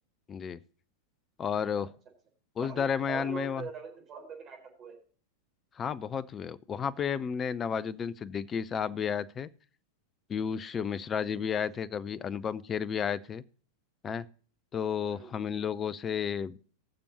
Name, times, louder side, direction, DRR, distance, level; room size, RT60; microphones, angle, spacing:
voice 1, 0.3-0.6 1.4-1.9 2.6-3.7 5.8-9.5 10.3-13.4 14.0-14.3 14.7-16.6, left 7 dB, 25° left, 0.5 m, -32 dB
voice 2, 2.6-5.0 15.1-15.4, right 6 dB, 30° right, 4.4 m, -43 dB
20.0 x 6.9 x 2.8 m
figure-of-eight pair, 90°, 0 cm